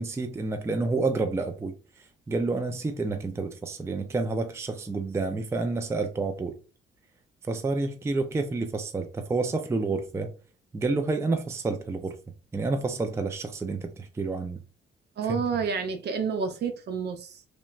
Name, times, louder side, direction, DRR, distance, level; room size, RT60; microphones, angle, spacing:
voice 1, 0.0-1.7 2.3-6.6 7.5-10.3 10.7-12.2 12.5-14.6 15.3-15.4, right 3 dB, 15° right, 0.4 m, -29 dB
voice 2, 15.2-17.4, right 6 dB, 55° right, 0.6 m, -29 dB
3.0 x 2.1 x 2.3 m
cardioid pair, 90°, 20 cm